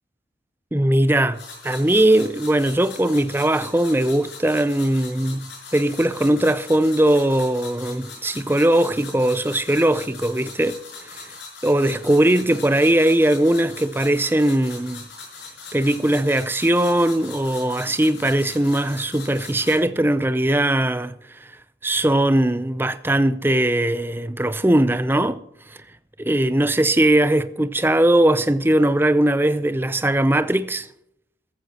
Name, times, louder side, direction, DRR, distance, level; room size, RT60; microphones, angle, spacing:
voice 1, 0.7-1.4 1.6-5.5 5.7-11.3 11.6-15.0 15.7-21.1 21.4-21.5 21.8-25.4 26.2-30.9, right 1 dB, 10° right, 0.5 m, -20 dB
sound 1, 1.3-19.8, left 4 dB, 65° left, 5.9 m, -41 dB
14.5 x 14.0 x 2.9 m
head